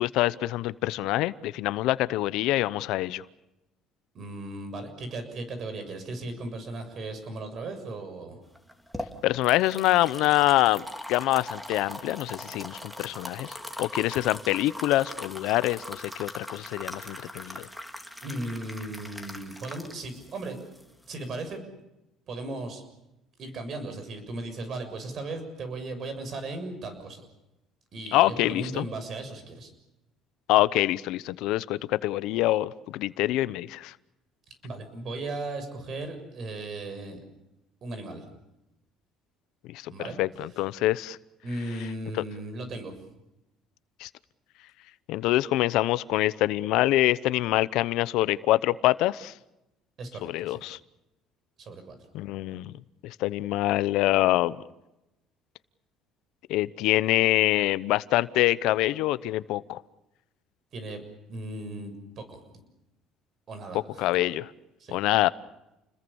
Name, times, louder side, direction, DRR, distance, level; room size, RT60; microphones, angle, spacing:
voice 1, 0.0-3.2 9.2-17.7 28.1-28.8 30.5-33.9 39.7-39.9 40.2-41.2 44.0-44.1 45.1-49.3 50.2-50.8 52.1-52.7 53.0-54.6 56.5-59.8 64.0-64.5 64.9-65.3, left 16 dB, 75° left, 17 dB, 0.8 m, -25 dB
voice 2, 4.1-8.4 18.2-20.6 21.1-21.6 22.3-22.8 23.4-27.3 27.9-29.7 34.6-37.2 37.8-38.2 39.9-40.2 41.4-42.9 50.0-50.6 51.6-52.0 60.7-61.0 61.3-62.6 63.5-64.0 64.8-65.0, right 2 dB, 45° right, 8 dB, 7.0 m, -36 dB
sound 1, 8.6-21.5, equal, 5° right, 2.8 m, -41 dB
29.5 x 21.0 x 7.1 m, 0.92 s
cardioid pair, 135°, 0 cm